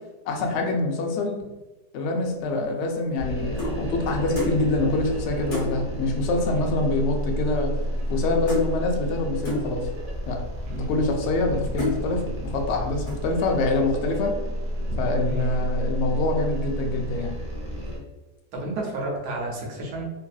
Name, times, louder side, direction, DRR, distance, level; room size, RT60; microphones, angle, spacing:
voice 1, 0.3-1.4 1.9-7.7 8.1-9.9 10.3-10.4 10.7-14.3 15.0-17.3, left 2 dB, 80° left, 2 dB, 0.6 m, -25 dB
sound 1, 2.6-3.8 4.3-4.6 5.0-5.1 5.5-5.7 6.6-6.7 6.9-7.3 7.5-8.2 8.5-8.7 9.4-9.7 10.4-10.5 11.1-11.4 11.8-12.0 12.5-12.8 13.1-13.4, left 2 dB, 50° left, 1.2 m, -30 dB
sound 2, 3.2-18.0, equal, 45° right, 0.5 m, -30 dB
voice 2, 14.8-15.6 18.5-20.1, right 1 dB, 75° right, -1 dB, 1.2 m, -32 dB
3.0 x 2.6 x 2.3 m, 1.1 s
omnidirectional pair, 1.8 m